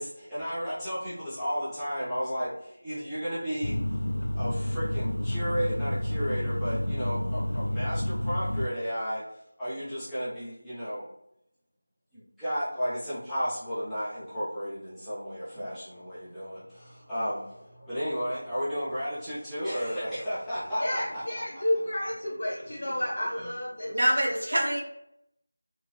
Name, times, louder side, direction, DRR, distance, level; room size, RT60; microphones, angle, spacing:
voice 1, 0.0-3.8 4.4-11.1 12.1-21.6 23.4-23.5, equal, ahead, -17 dB, 0.5 m, -33 dB
sound 1, 3.6-8.7, left 1 dB, 65° left, 0.3 m, -30 dB
voice 2, 20.7-24.6, left 1 dB, 40° left, -5 dB, 0.9 m, -31 dB
voice 3, 23.9-24.8, right 1 dB, 55° right, -2 dB, 0.7 m, -25 dB
2.7 x 2.2 x 3.0 m, 0.78 s
figure-of-eight pair, 175°, 0 cm